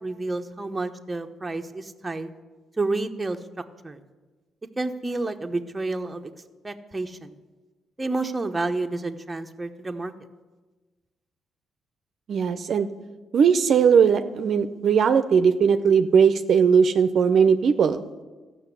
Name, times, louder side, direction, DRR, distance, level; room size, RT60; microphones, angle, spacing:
voice 1, 0.0-2.3 2.8-3.4 3.8-4.0 4.8-6.3 6.6-7.4 8.0-10.1, right 2 dB, 15° right, 5 dB, 0.9 m, -29 dB
voice 2, 12.3-12.9 13.3-18.0, right 6 dB, 60° right, 9 dB, 0.6 m, -19 dB
13.5 x 6.0 x 8.3 m, 1.3 s
cardioid pair, 90°, 0 cm